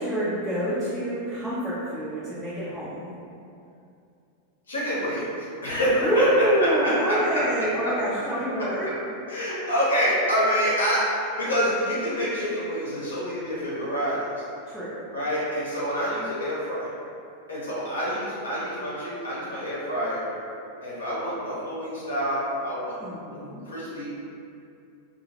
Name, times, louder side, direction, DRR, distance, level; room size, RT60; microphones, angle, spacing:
voice 1, 0.0-3.1 6.0-8.9 14.7-15.0 23.0-23.6, right 1 dB, ahead, -13 dB, 0.5 m, -26 dB
voice 2, 4.7-6.3 6.6-7.9 8.6-8.7 9.3-14.2 15.1-16.9 17.5-20.3 20.8-23.0 23.3-24.1, equal, 70° left, -8 dB, 0.8 m, -27 dB
2.2 x 2.1 x 2.8 m, 2.5 s
figure-of-eight pair, 90°, 0 cm